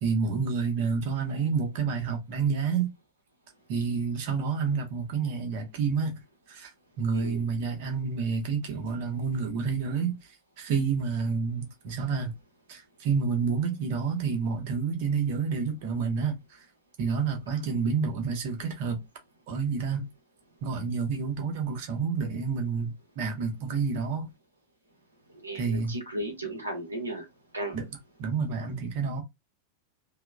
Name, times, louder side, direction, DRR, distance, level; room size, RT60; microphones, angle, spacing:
voice 1, 0.0-2.9 3.7-6.2 6.5-6.7 7.0-12.3 12.7-16.7 17.0-19.0 19.5-20.1 20.6-24.3 25.5-25.9 27.7-27.8 28.2-29.2, right 5 dB, 45° right, 0.8 m, -29 dB
voice 2, 7.1-7.4 25.4-27.2 27.5-27.8, right 1 dB, 80° right, 0.7 m, -35 dB
2.9 x 2.1 x 2.3 m
figure-of-eight pair, 90°, 0 cm